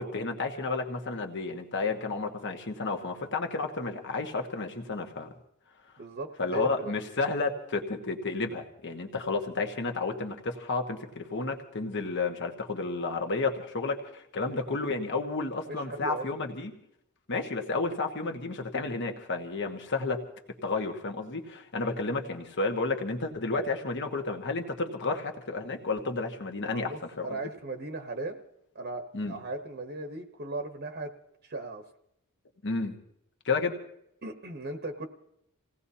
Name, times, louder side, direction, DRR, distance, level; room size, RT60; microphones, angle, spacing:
voice 1, 0.0-5.3 6.4-16.7 17.3-20.2 20.6-27.4 29.1-29.4 32.6-33.0 33.4-33.7, left 3 dB, 55° left, 4 dB, 1.5 m, -31 dB
voice 2, 6.0-6.9 15.7-16.3 26.7-28.4 28.7-31.1 31.4-31.8 34.2-35.1, right 2 dB, 50° right, 5 dB, 1.0 m, -37 dB
28.0 x 17.5 x 2.8 m, 0.77 s
head